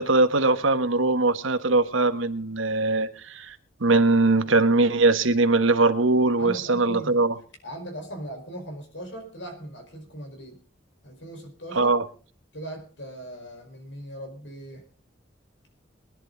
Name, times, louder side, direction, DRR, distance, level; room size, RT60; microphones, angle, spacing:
voice 1, 0.0-7.3 11.7-12.0, right 3 dB, 85° right, 1.3 m, -21 dB
voice 2, 6.4-7.1 7.6-10.6 11.0-12.0 12.5-14.8, right 1 dB, 70° left, 4.9 m, -39 dB
22.0 x 10.5 x 3.9 m
head